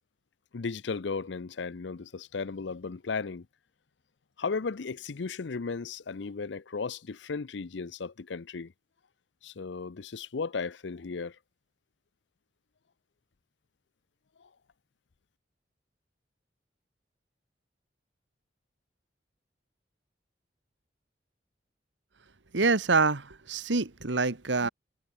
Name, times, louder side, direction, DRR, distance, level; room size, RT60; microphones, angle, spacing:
voice 1, 0.5-3.5 4.4-8.7 9.4-11.4, left 4 dB, 75° left, 0.6 m, -35 dB
voice 2, 22.5-24.7, right 3 dB, 80° right, 1.5 m, -26 dB
head